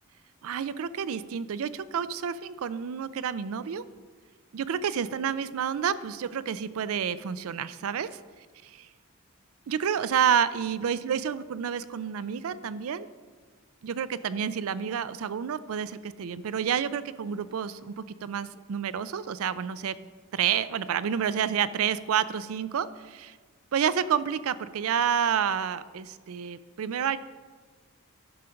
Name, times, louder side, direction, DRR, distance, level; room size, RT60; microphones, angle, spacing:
voice 1, 0.4-3.8 4.5-8.1 9.7-13.1 13.8-20.0 20.3-23.4 23.7-27.2, right 8 dB, 75° right, 15 dB, 0.4 m, -29 dB
10.5 x 5.1 x 5.7 m, 1.5 s
head